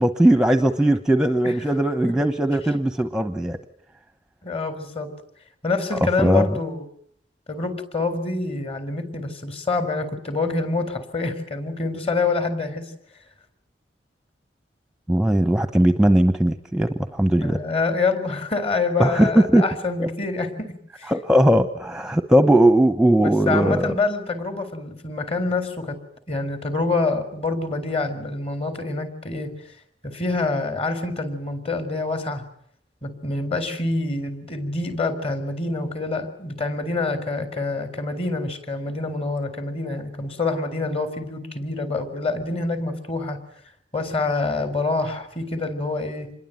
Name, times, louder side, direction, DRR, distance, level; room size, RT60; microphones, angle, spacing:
voice 1, 0.0-3.6 5.9-6.5 15.1-17.6 19.0-19.6 20.0-20.1 21.1-23.9, right 1 dB, 5° right, 9 dB, 1.1 m, -19 dB
voice 2, 4.4-5.1 5.6-6.9 7.5-12.9 17.3-21.1 23.2-26.0 26.3-29.7 30.0-32.4 33.0-43.4 43.9-46.3, left 3 dB, 35° left, 10 dB, 4.1 m, -26 dB
27.0 x 22.0 x 9.3 m, 0.66 s
head